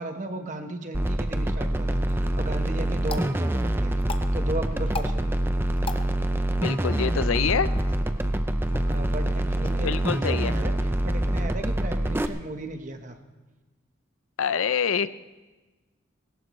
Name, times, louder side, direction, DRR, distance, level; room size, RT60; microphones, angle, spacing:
voice 1, 0.0-3.9 4.3-5.3 8.8-13.2, right 2 dB, 35° right, 6 dB, 1.2 m, -35 dB
sound 1, 0.9-12.3, right 1 dB, 10° right, 0.5 m, -25 dB
sound 2, 2.0-12.0, left 3 dB, 25° left, 0.7 m, -42 dB
voice 2, 6.6-7.7 9.8-10.5 14.4-15.1, left 6 dB, 85° left, 14 dB, 0.6 m, -26 dB
20.0 x 17.5 x 3.1 m, 1.2 s
head